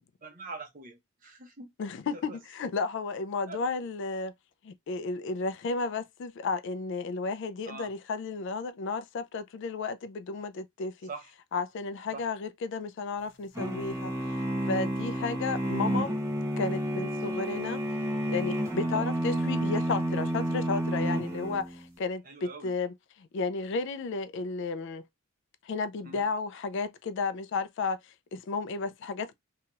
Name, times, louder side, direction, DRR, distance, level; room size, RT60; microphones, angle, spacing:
voice 1, 0.2-1.7 2.3-2.4 3.5-3.6 7.7-7.9 11.0-11.3 12.1-12.2 15.2-15.3 18.8-19.1 22.3-22.7 26.0-26.3, right 4 dB, 40° right, 0.8 m, -43 dB
voice 2, 1.8-4.3 4.6-11.1 11.5-14.4 14.7-16.1 16.6-17.8 18.3-25.0 25.6-29.3, left 4 dB, 55° left, 0.3 m, -33 dB
sound 1, 13.6-21.9, right 1 dB, 15° right, 0.7 m, -30 dB
2.8 x 2.3 x 2.8 m
head